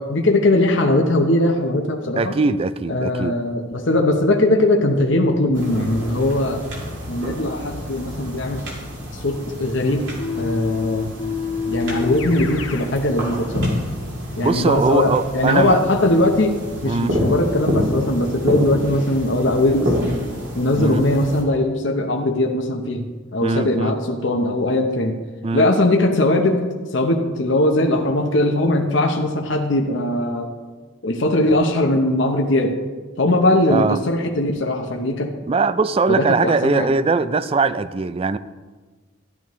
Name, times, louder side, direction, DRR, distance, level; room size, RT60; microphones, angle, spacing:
voice 1, 0.0-2.3 2.9-6.6 7.1-8.7 9.1-10.1 10.4-11.1 11.6-13.8 14.4-16.6 16.8-20.0 20.5-23.0 23.3-25.2 25.5-26.6 26.9-30.5 31.0-32.8 33.2-35.3 36.1-36.9, left 1 dB, 60° left, 3 dB, 0.8 m, -20 dB
voice 2, 2.2-3.4 14.4-15.8 16.8-17.2 20.8-21.0 23.4-24.0 25.4-25.7 33.7-34.0 35.5-38.4, right 4 dB, 30° right, 14 dB, 0.3 m, -20 dB
sound 1, 5.5-21.4, equal, 60° right, 2.6 m, -29 dB
Keyboard (musical), 10.2-12.9, left 6 dB, 80° left, 1.2 m, -27 dB
13.0 x 11.0 x 3.1 m, 1.4 s
head